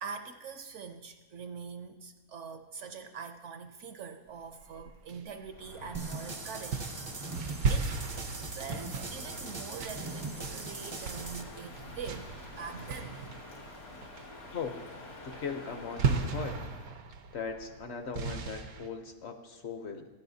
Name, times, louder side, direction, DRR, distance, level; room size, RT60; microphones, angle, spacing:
voice 1, 0.0-6.9 7.7-7.9 8.4-13.9, right 6 dB, 65° right, 8 dB, 0.8 m, -44 dB
sound 1, 4.6-6.3 6.7-13.7 14.0-14.5 14.8-15.0 15.3-18.9, right 5 dB, 90° right, 1.2 m, -36 dB
Crow, 5.5-16.9, left 1 dB, 80° left, 2.3 m, -47 dB
sound 2, 5.9-11.4, right 3 dB, 40° right, 0.4 m, -41 dB
voice 2, 15.2-16.5 17.3-20.1, left 5 dB, 55° left, 6 dB, 0.8 m, -39 dB
16.0 x 9.5 x 2.7 m, 1.2 s
omnidirectional pair, 1.5 m